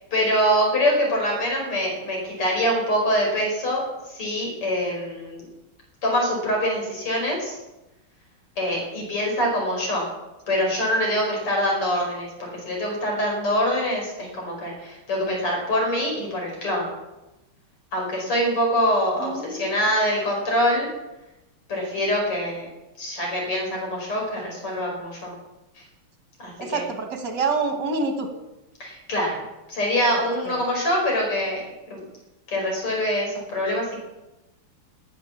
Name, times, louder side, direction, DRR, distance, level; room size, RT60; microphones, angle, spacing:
voice 1, 0.0-5.5 6.0-7.6 8.6-10.0 10.5-16.9 17.9-20.9 21.7-22.7 23.0-25.3 26.4-26.8 28.8-29.4 29.7-31.6 31.9-32.1 32.5-34.0, equal, 80° left, 0 dB, 5.8 m, -24 dB
voice 2, 19.2-19.8 26.6-28.3 30.2-30.6, right 4 dB, 55° right, 5 dB, 2.4 m, -27 dB
19.0 x 8.7 x 7.2 m, 1.0 s
omnidirectional pair, 2.4 m